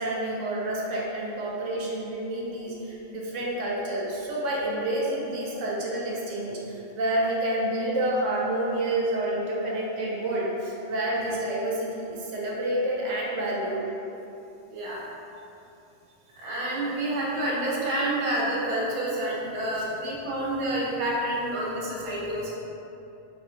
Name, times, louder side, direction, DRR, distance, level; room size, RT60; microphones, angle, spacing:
voice 1, 0.0-14.0 19.8-19.9, right 1 dB, 80° right, -3 dB, 1.0 m, -29 dB
voice 2, 14.7-15.0 16.4-22.6, right 1 dB, 35° right, -6 dB, 0.6 m, -28 dB
3.0 x 2.6 x 4.2 m, 2.8 s
omnidirectional pair, 1.3 m